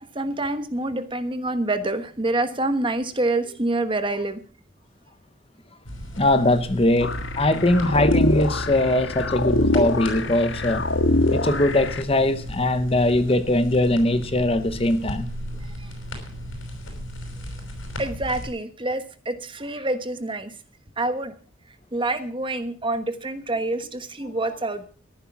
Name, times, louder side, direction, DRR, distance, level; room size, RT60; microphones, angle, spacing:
voice 1, 0.1-4.4 18.0-20.5 21.0-21.3 21.9-24.8, right 2 dB, 25° right, 1.2 m, -26 dB
sound 1, 5.8-18.5, equal, 90° left, 5.6 m, -36 dB
voice 2, 6.2-10.9 11.3-15.3 24.2-24.3, left 1 dB, 30° left, 0.9 m, -21 dB
sound 2, 7.0-12.0, left 2 dB, 70° left, 1.4 m, -24 dB
14.0 x 11.0 x 6.0 m
head